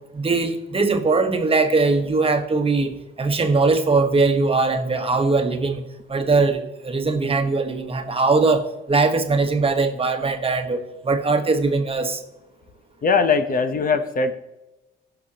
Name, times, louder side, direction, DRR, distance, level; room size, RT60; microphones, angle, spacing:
voice 1, 0.1-5.8 6.1-12.2, right 3 dB, 30° right, 7 dB, 1.2 m, -21 dB
voice 2, 13.0-14.3, left 5 dB, 45° left, 10 dB, 0.8 m, -20 dB
16.0 x 5.9 x 2.9 m, 1.0 s
cardioid pair, 90°, 20 cm